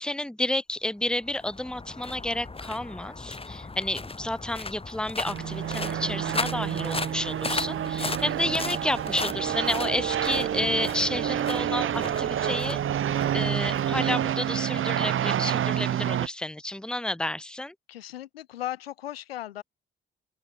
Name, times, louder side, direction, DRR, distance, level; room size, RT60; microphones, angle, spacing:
voice 1, 0.0-12.8 13.3-17.7, left 1 dB, 5° left, 1.1 m, -31 dB
sound 1, 1.1-14.5, left 3 dB, 20° left, 1.5 m, -37 dB
sound 2, 5.2-16.3, right 10 dB, 45° right, 0.8 m, -28 dB
voice 2, 17.9-19.6, left 13 dB, 85° left, 1.4 m, -36 dB
figure-of-eight pair, 40°, 29 cm